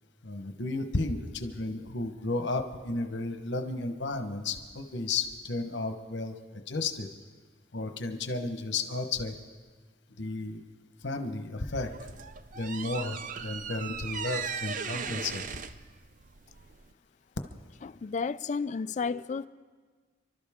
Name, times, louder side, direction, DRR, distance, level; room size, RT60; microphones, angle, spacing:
voice 1, 0.2-7.1 7.7-9.3 10.2-10.6 11.0-12.0 12.5-15.4, left 3 dB, 65° left, 1.1 m, -33 dB
sound 1, 11.7-16.9, right 6 dB, 45° right, 0.5 m, -38 dB
voice 2, 17.8-19.5, left 5 dB, 40° left, 0.3 m, -32 dB
29.5 x 12.5 x 3.6 m
head